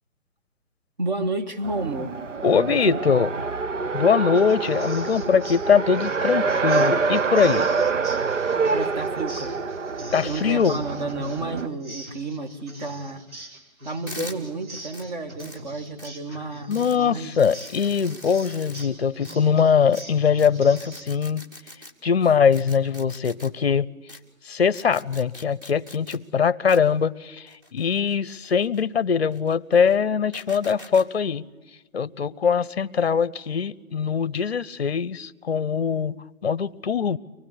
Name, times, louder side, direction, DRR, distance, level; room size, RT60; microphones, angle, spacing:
voice 1, 1.0-2.1 2.7-3.0 8.7-9.6 10.2-13.2 13.8-17.4, right 2 dB, 30° right, 1.5 m, -31 dB
Race car auto racing, 1.6-11.7, right 4 dB, 60° right, 1.1 m, -26 dB
voice 2, 2.4-3.3 3.9-7.7 10.1-10.8 16.7-21.4 22.0-23.9 24.4-31.5 31.9-37.2, left 6 dB, 45° left, 0.7 m, -22 dB
sound 1, 4.3-21.1, equal, 75° right, 4.3 m, -43 dB
sound 2, 14.1-14.4 14.9-15.0 15.4-15.6 16.0-16.1 16.7-17.0 17.4-18.8 19.2-19.4 19.9-20.0 20.4-20.5 20.8-21.9 22.5-23.5 24.1-24.2 24.7-26.2 26.7-26.8 27.5-28.8 29.3-30.0 30.3-31.1, left 1 dB, 15° right, 1.3 m, -43 dB
24.5 x 19.0 x 9.8 m
hypercardioid pair, 170°, 43 cm